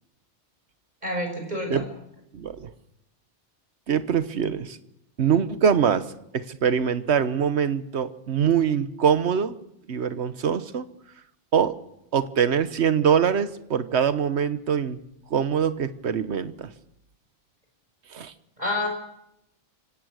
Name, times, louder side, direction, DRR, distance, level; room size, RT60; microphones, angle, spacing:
voice 1, 1.0-1.9 18.6-18.9, left 1 dB, 35° right, 3 dB, 6.2 m, -28 dB
voice 2, 2.3-2.7 3.9-4.8 5.2-6.1 6.3-9.5 9.9-10.8 11.5-11.7 12.1-15.0 15.3-16.7 18.1-18.3, right 7 dB, 70° right, 13 dB, 1.3 m, -23 dB
25.0 x 17.0 x 6.4 m, 0.80 s
omnidirectional pair, 1.2 m